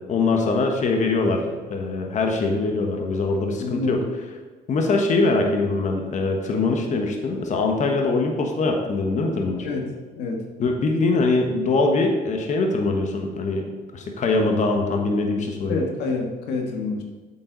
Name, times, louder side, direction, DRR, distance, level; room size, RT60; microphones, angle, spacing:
voice 1, 0.1-1.4 1.7-4.0 4.7-9.7 10.6-13.6 13.9-15.8, left 3 dB, 45° left, 2 dB, 1.4 m, -22 dB
voice 2, 3.6-4.0 9.6-9.9 10.2-10.4 15.7-17.0, left 3 dB, 90° left, 2 dB, 1.6 m, -27 dB
8.4 x 7.6 x 4.0 m, 1.3 s
cardioid pair, 110°, 17 cm